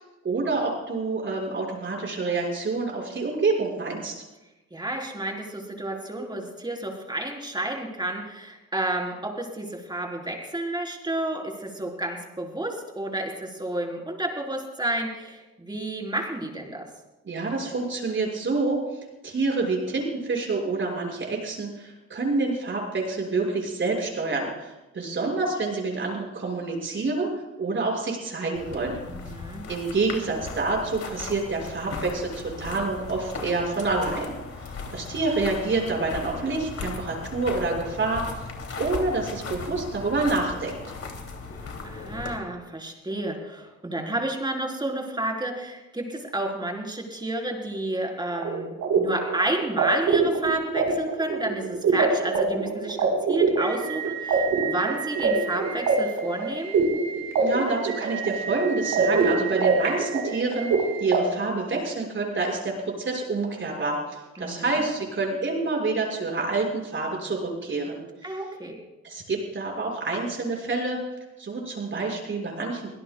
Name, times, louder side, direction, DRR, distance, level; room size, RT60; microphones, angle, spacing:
voice 1, 0.2-4.1 17.2-18.8 19.2-27.3 27.6-29.0 29.7-34.4 34.6-38.2 38.8-40.8 57.4-60.7 61.0-68.0 69.0-71.0 71.4-72.9, right 3 dB, 40° right, 0 dB, 6.0 m, -27 dB
voice 2, 4.7-16.9 29.1-29.6 41.8-56.7 64.4-64.7 68.2-68.8, right 1 dB, 15° right, 0 dB, 4.1 m, -31 dB
sound 1, 28.6-42.4, left 4 dB, 55° left, 2.9 m, -37 dB
sound 2, 48.4-61.2, right 4 dB, 80° right, 4.4 m, -25 dB
24.5 x 17.0 x 2.3 m, 1.0 s
cardioid pair, 90°, 30 cm